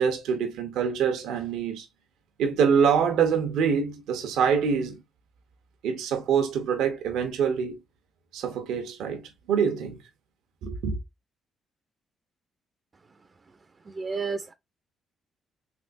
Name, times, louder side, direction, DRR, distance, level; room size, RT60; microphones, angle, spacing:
voice 1, 0.0-1.9 2.4-5.0 5.8-7.8 8.3-10.0 10.6-11.0, right 6 dB, 85° right, 0.8 m, -25 dB
voice 2, 13.9-14.5, right 4 dB, 35° right, 0.4 m, -31 dB
3.4 x 3.4 x 2.5 m
cardioid pair, 90°, 0 cm